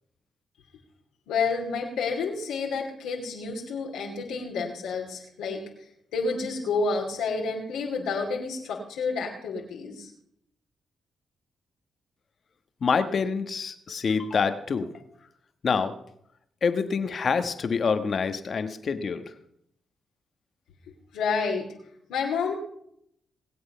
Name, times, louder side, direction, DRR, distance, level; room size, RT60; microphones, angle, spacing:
voice 1, 1.3-5.6 6.1-10.1 21.1-21.7 22.1-22.6, left 4 dB, 85° left, -2 dB, 2.7 m, -29 dB
voice 2, 12.8-15.0 15.6-15.9 16.6-19.3, left 5 dB, 55° left, 9 dB, 1.4 m, -26 dB
20.5 x 7.9 x 5.6 m, 0.72 s
supercardioid pair, 50°, 0 cm